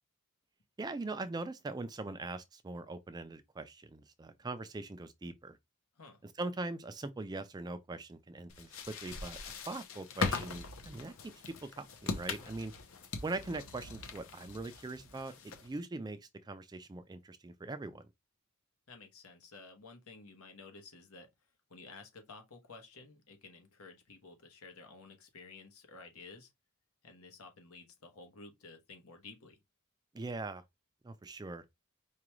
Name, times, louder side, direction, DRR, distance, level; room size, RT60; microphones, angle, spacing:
voice 1, 0.8-5.6 6.4-12.7 13.2-18.0 30.1-30.6 31.0-31.6, right 2 dB, 20° right, 0.3 m, -41 dB
sound 1, 8.5-15.8, left 4 dB, 65° left, 0.7 m, -40 dB
voice 2, 18.9-21.3 21.7-26.5 27.0-29.6, left 3 dB, 80° left, 1.1 m, -53 dB
4.9 x 2.3 x 3.0 m
head